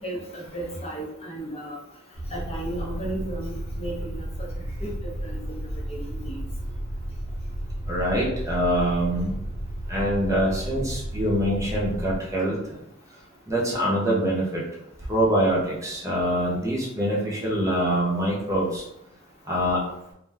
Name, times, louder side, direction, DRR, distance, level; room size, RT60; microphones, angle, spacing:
voice 1, 0.0-1.8 2.3-4.5 4.8-4.9 5.2-5.6 5.9-6.4, right 1 dB, 30° left, -3 dB, 0.6 m, -34 dB
sound 1, 2.1-12.2, right 1 dB, 10° left, 1.1 m, -33 dB
voice 2, 7.9-9.3 9.9-12.6 13.5-14.6 15.1-18.8 19.5-19.8, equal, 15° right, -4 dB, 0.7 m, -24 dB
2.5 x 2.2 x 3.3 m, 0.79 s
head